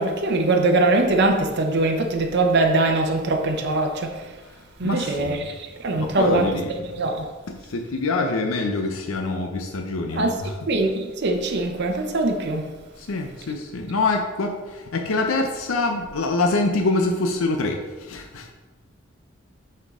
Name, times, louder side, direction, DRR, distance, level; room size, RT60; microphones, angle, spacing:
voice 1, 0.0-4.1 4.8-5.5 5.8-6.5 6.9-7.2 10.1-10.3 10.7-12.6, right 2 dB, 55° right, 0.7 m, -22 dB
voice 2, 4.8-5.4 5.9-6.7 7.7-10.5 13.1-14.5 14.9-17.8 18.1-18.4, left 3 dB, 85° left, 0.6 m, -25 dB
8.2 x 4.4 x 3.6 m
head